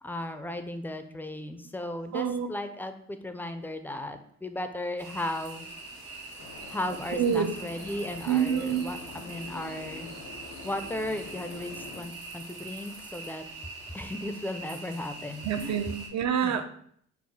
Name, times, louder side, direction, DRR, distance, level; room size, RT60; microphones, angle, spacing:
voice 1, 0.0-5.7 6.7-10.1 10.6-13.4 13.9-15.8 16.4-16.6, left 1 dB, 5° left, 8 dB, 0.4 m, -36 dB
voice 2, 2.1-2.5 7.2-7.5 8.3-8.9 15.4-16.7, right 8 dB, 65° right, 9 dB, 0.5 m, -27 dB
sound 1, 5.0-16.1, right 3 dB, 90° right, 1.4 m, -43 dB
sound 2, 6.4-12.1, left 4 dB, 75° left, 0.7 m, -46 dB
4.7 x 2.0 x 4.0 m, 0.64 s
cardioid pair, 90°, 30 cm